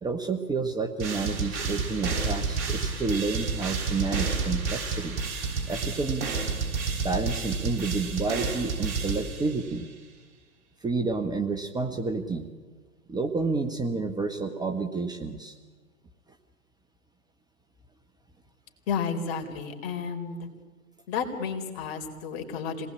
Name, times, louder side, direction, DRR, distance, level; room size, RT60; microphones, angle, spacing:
voice 1, 0.0-5.2 5.7-6.3 7.0-9.9 10.8-12.5 13.1-15.6, right 4 dB, 10° right, 7 dB, 1.0 m, -30 dB
sound 1, 1.0-9.8, right 4 dB, 50° right, 5.8 m, -30 dB
voice 2, 18.9-20.5 21.1-22.9, left 6 dB, 45° left, 5 dB, 4.1 m, -32 dB
27.0 x 19.5 x 8.6 m, 1.4 s
hypercardioid pair, 120°, 43 cm